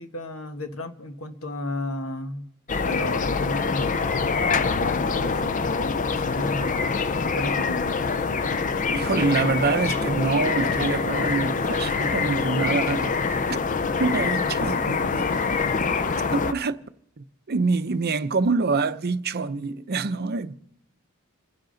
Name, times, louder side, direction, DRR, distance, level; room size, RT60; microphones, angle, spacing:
voice 1, 0.0-2.5 2.8-8.3 14.6-15.1, left 1 dB, 75° left, 1.3 m, -34 dB
sound 1, 2.7-16.5, left 4 dB, 35° left, 0.5 m, -25 dB
voice 2, 8.9-13.2 14.0-15.3 16.3-16.8 17.2-20.6, right 4 dB, 50° right, 0.6 m, -25 dB
28.5 x 10.5 x 3.9 m
head